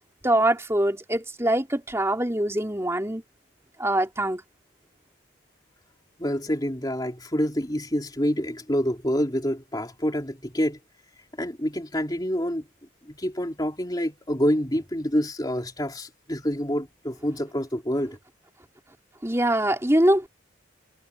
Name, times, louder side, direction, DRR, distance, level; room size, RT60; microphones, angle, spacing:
voice 1, 0.2-3.2 3.8-4.4 19.2-20.3, right 1 dB, 15° right, 3.4 m, -23 dB
voice 2, 6.2-10.8 11.4-12.7 13.0-18.2, equal, 20° left, 3.4 m, -27 dB
head